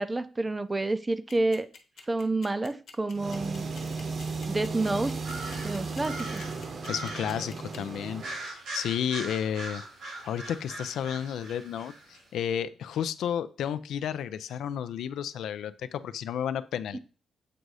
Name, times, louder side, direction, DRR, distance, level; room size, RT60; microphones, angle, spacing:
voice 1, 0.0-1.7 2.1-3.7 4.5-5.2 5.6-6.6 16.9-17.0, right 2 dB, 20° right, 0.4 m, -29 dB
sound 1, 1.3-8.0, left 6 dB, 70° left, 1.0 m, -48 dB
sound 2, 3.1-8.5, right 4 dB, 50° right, 0.9 m, -35 dB
sound 3, 5.2-7.5 8.2-12.2, right 2 dB, 90° right, 2.4 m, -41 dB
voice 2, 6.9-9.8 10.2-11.9 12.3-17.0, left 9 dB, 85° left, 0.4 m, -32 dB
7.6 x 2.7 x 4.7 m
cardioid pair, 105°, 0 cm